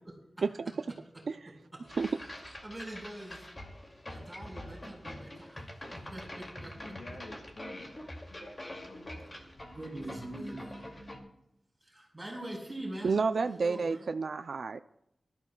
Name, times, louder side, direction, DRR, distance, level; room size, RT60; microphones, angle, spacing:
voice 1, 0.0-0.4 1.1-1.2 1.7-3.5 4.0-7.2 8.7-11.0 11.8-13.2 13.4-14.0, right 1 dB, 15° right, -1 dB, 4.7 m, -45 dB
sound 1, 1.9-11.2, left 1 dB, 35° left, 2.4 m, -45 dB
voice 2, 6.8-8.0 8.3-9.5, left 1 dB, 65° left, 3 dB, 2.3 m, -49 dB
voice 3, 13.0-14.8, right 4 dB, 75° right, 9 dB, 0.4 m, -30 dB
24.0 x 13.5 x 2.3 m, 0.80 s
wide cardioid pair, 105°, 0 cm